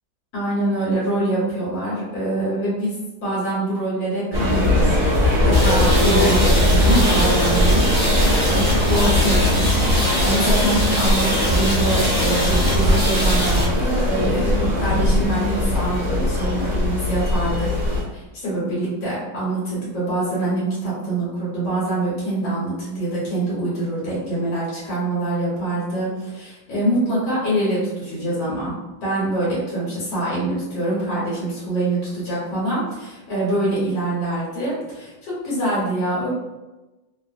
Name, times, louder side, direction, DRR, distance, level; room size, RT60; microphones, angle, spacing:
voice 1, 0.3-7.8 8.2-17.7 18.1-28.7 29.0-36.3, right 1 dB, 75° left, -8 dB, 1.9 m, -24 dB
sound 1, 4.3-18.0, left 1 dB, 45° right, 0.4 m, -20 dB
sound 2, 5.5-13.6, equal, 30° left, 0.5 m, -23 dB
3.8 x 2.0 x 2.4 m, 1.1 s
omnidirectional pair, 2.3 m